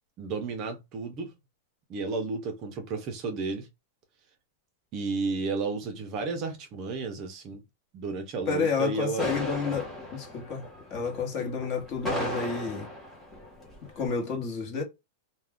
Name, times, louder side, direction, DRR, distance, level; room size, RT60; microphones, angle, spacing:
voice 1, 0.2-1.3 1.9-3.7 4.9-7.6 7.9-9.3 11.4-11.5, right 4 dB, 30° right, 0.5 m, -32 dB
voice 2, 8.5-12.9 13.8-14.8, left 5 dB, 35° left, 1.1 m, -30 dB
sound 1, 9.2-14.1, left 1 dB, 5° left, 1.0 m, -36 dB
2.3 x 2.1 x 3.5 m
supercardioid pair, 165°, 0 cm